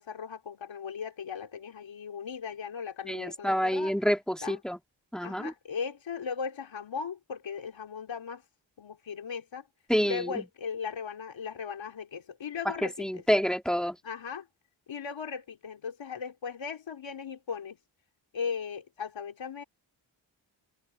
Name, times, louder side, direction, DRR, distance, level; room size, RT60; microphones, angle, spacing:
voice 1, 0.0-3.9 4.4-4.6 5.2-8.4 8.8-9.7 10.0-13.2 14.0-14.5 14.9-17.8 18.3-19.6, left 6 dB, 70° left, 3.0 m, -37 dB
voice 2, 3.1-4.8 5.1-5.5 9.9-10.4 12.6-14.0, equal, ahead, 3.2 m, -28 dB
cardioid pair, 55°, 47 cm